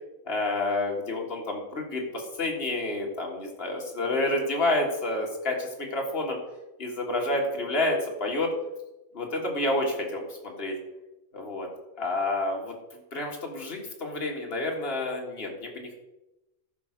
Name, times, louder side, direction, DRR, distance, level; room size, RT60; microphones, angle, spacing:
voice 1, 0.3-6.4 6.8-8.5 9.1-10.7 11.3-11.7 12.0-12.8 13.1-15.9, left 2 dB, 40° left, 0 dB, 2.1 m, -29 dB
12.0 x 4.9 x 6.5 m, 0.98 s
omnidirectional pair, 1.6 m